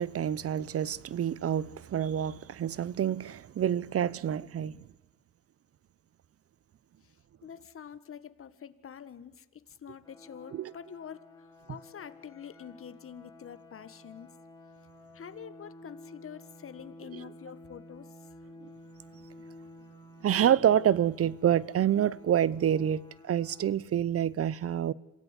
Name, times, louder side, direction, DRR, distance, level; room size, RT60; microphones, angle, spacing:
voice 1, 0.0-4.8 10.5-10.7 18.6-18.7 20.2-24.9, right 10 dB, 50° right, 0.7 m, -27 dB
voice 2, 7.4-14.3 15.1-18.3, left 8 dB, 45° left, 1.7 m, -46 dB
sound 1, 10.0-23.7, left 1 dB, 10° left, 4.3 m, -52 dB
26.5 x 16.5 x 8.3 m
cardioid pair, 90°, 30 cm